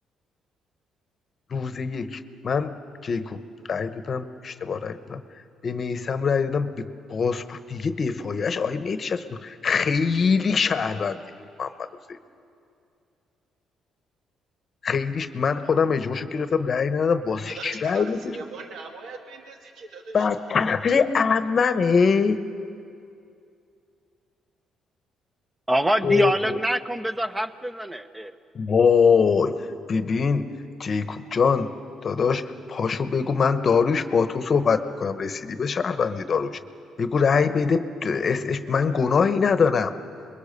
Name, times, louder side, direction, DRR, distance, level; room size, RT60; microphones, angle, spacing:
voice 1, 1.5-2.8 3.0-3.4 3.7-5.2 5.6-11.2 11.6-11.7 12.1-12.2 14.8-18.2 20.1-22.4 26.0-26.6 28.5-30.5 30.8-31.7 32.0-36.6 37.0-39.9, left 5 dB, 40° left, 10 dB, 1.0 m, -23 dB
voice 2, 17.4-20.3 20.7-20.9, right 4 dB, 65° right, 3 dB, 1.9 m, -40 dB
voice 3, 25.7-28.3, right 1 dB, 10° right, 11 dB, 0.9 m, -25 dB
27.5 x 22.0 x 6.8 m, 2.5 s
cardioid pair, 110°, 0 cm